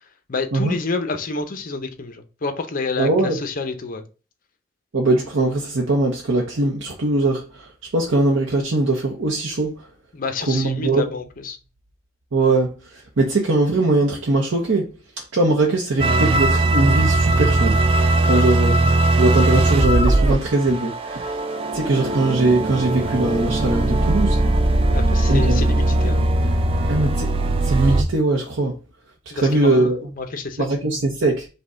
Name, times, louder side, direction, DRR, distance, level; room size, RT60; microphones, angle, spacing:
voice 1, 0.3-4.0 10.1-11.6 18.2-18.4 24.9-26.2 29.3-30.7, left 3 dB, 45° left, 0.6 m, -28 dB
voice 2, 3.0-3.4 4.9-9.9 10.5-11.0 12.3-14.9 15.3-17.8 18.2-18.9 19.2-21.3 21.7-24.4 25.3-25.6 26.9-28.8 29.4-30.0 30.6-31.5, right 2 dB, 70° right, 0.7 m, -21 dB
sound 1, 16.0-28.0, right 2 dB, 30° right, 0.4 m, -19 dB
5.2 x 2.2 x 3.7 m
head